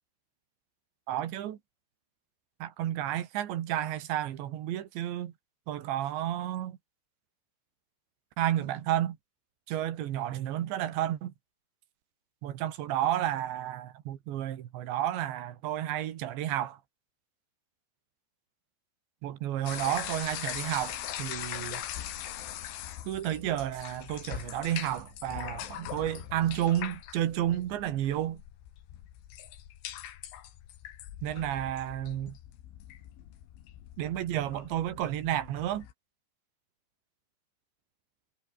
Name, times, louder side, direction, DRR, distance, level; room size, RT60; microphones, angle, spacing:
voice 1, 1.1-1.6 2.6-5.3 5.7-6.8 8.4-9.2 9.7-11.3 12.4-16.8 19.2-21.8 23.1-28.4 31.2-32.4 34.0-35.9, right 12 dB, 70° right, 4.0 m, -31 dB
sound 1, 19.7-35.9, left 12 dB, 75° left, 4.5 m, -41 dB
omnidirectional pair, 5.7 m